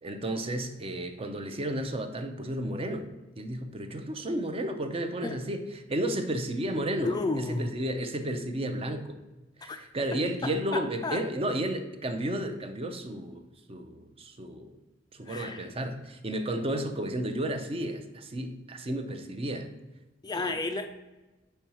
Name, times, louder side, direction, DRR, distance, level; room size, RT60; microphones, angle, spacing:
voice 1, 0.0-3.1 3.4-9.2 9.6-14.7 15.1-19.7 20.3-20.5, right 1 dB, 30° right, 7 dB, 0.5 m, -32 dB
voice 2, 7.0-7.7 9.7-9.8 10.4-11.2 15.3-15.6 20.2-20.9, left 3 dB, 20° left, 7 dB, 0.4 m, -32 dB
4.6 x 4.5 x 5.5 m, 1.1 s
head